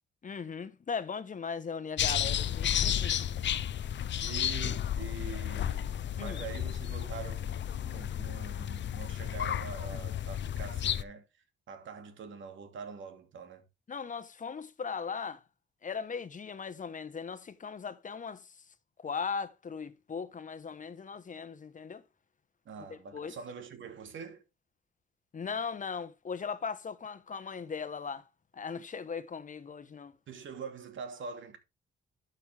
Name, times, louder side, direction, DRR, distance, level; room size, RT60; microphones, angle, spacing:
voice 1, 0.2-3.3 6.2-6.4 13.9-15.4 15.8-18.5 19.0-22.0 22.9-23.4 25.3-28.3 28.5-30.1, left 5 dB, 40° left, 1.3 m, -38 dB
sound 1, 2.0-11.0, left 10 dB, 60° left, 0.8 m, -32 dB
voice 2, 4.2-13.6 22.6-24.4 30.3-31.6, right 6 dB, 65° right, 2.8 m, -44 dB
12.0 x 6.7 x 3.6 m
cardioid pair, 100°, 21 cm